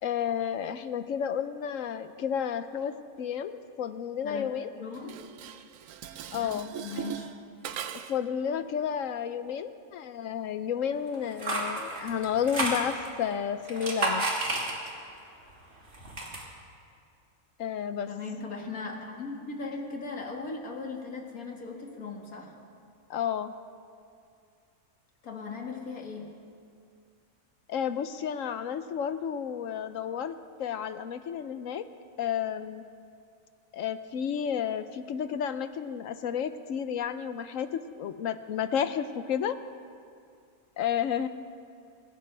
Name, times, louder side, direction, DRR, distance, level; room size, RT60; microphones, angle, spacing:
voice 1, 0.0-4.7 6.3-6.7 7.9-14.3 17.6-18.1 23.1-23.5 27.7-31.9 32.2-32.9 33.7-39.6 40.8-41.3, left 8 dB, 70° left, 11 dB, 1.0 m, -31 dB
voice 2, 4.8-5.2 6.3-7.3 18.1-22.6 25.2-26.4, left 4 dB, 90° left, 1 dB, 2.3 m, -38 dB
Dishes pots and pans, 4.9-8.3, right 9 dB, 70° right, 1.0 m, -40 dB
sound 1, 11.1-13.2 13.6-15.1 15.5-16.4, right 2 dB, 55° right, 2.8 m, -31 dB
25.5 x 16.0 x 3.4 m, 2.4 s
omnidirectional pair, 1.5 m